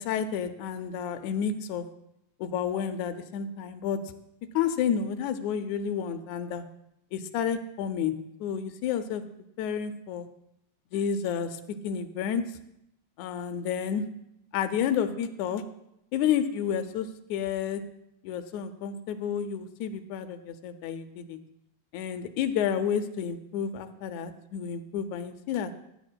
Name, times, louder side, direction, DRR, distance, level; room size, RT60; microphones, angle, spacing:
voice 1, 0.0-1.8 2.4-4.0 4.5-6.6 7.1-8.1 8.4-9.2 9.6-10.3 10.9-12.4 13.2-14.0 14.5-15.6 16.1-17.8 18.2-21.4 21.9-25.7, left 8 dB, 85° left, 8 dB, 1.6 m, -30 dB
16.0 x 9.9 x 2.2 m, 0.79 s
omnidirectional pair, 4.0 m